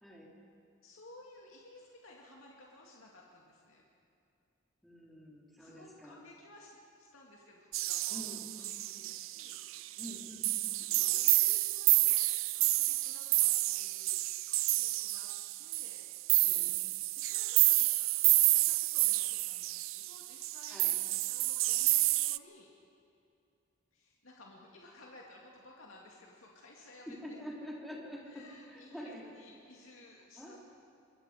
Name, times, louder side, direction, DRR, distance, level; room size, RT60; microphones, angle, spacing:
voice 1, 0.8-3.8 5.6-10.1 10.8-12.2 12.5-14.2 14.7-15.3 15.6-16.5 17.2-18.0 18.4-22.7 23.9-27.4 28.2-30.6, left 2 dB, 90° left, -2 dB, 2.2 m, -57 dB
voice 2, 4.8-6.2 8.1-8.4 10.0-10.5 16.4-16.8 20.7-21.0 27.1-29.2 30.4-30.6, equal, ahead, -4 dB, 3.4 m, -46 dB
sound 1, 7.7-22.4, right 20 dB, 80° right, 0.4 m, -29 dB
25.0 x 21.5 x 5.0 m, 2.6 s
head